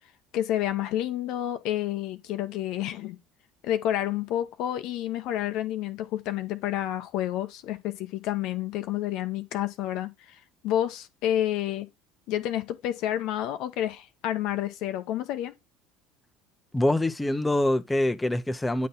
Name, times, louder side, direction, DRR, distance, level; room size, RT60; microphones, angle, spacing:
voice 1, 0.3-3.2 3.6-10.4 10.6-11.9 12.3-15.5, left 12 dB, 55° left, 0.7 m, -29 dB
voice 2, 16.7-18.9, left 1 dB, 10° left, 0.7 m, -25 dB
9.4 x 3.8 x 3.9 m
figure-of-eight pair, 65°, 0 cm